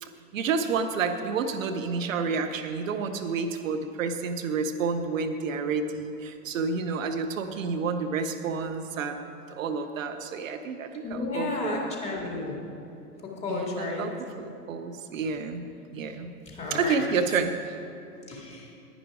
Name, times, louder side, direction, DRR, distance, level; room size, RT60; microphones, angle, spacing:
voice 1, 0.0-11.9 13.5-15.7 15.9-16.3 16.7-17.6, right 5 dB, 60° right, 7 dB, 0.8 m, -30 dB
voice 2, 11.0-12.6 13.4-14.0 16.5-16.9 18.3-18.7, left 3 dB, 15° left, -1 dB, 2.2 m, -32 dB
10.5 x 10.0 x 4.8 m, 2.7 s
figure-of-eight pair, 95°, 45 cm